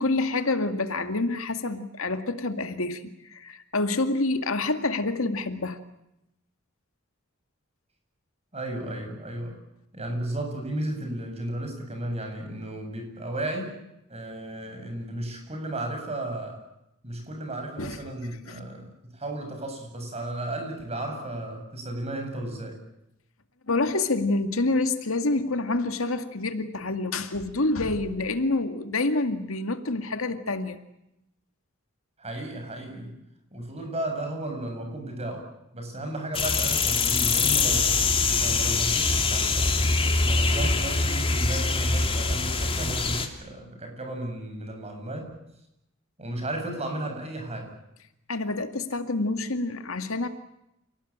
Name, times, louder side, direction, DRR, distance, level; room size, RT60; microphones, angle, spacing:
voice 1, 0.0-5.8 17.8-18.0 18.5-18.6 23.7-30.8 48.3-50.3, left 2 dB, 75° left, 8 dB, 2.2 m, -27 dB
voice 2, 8.5-9.5 9.9-13.7 14.1-16.6 17.0-22.8 32.2-33.1 33.5-37.9 38.4-45.3 46.2-47.7, right 1 dB, 30° right, 4 dB, 7.6 m, -34 dB
sound 1, 36.3-43.3, left 4 dB, 25° left, 2.9 m, -24 dB
29.0 x 19.5 x 8.8 m, 0.84 s
head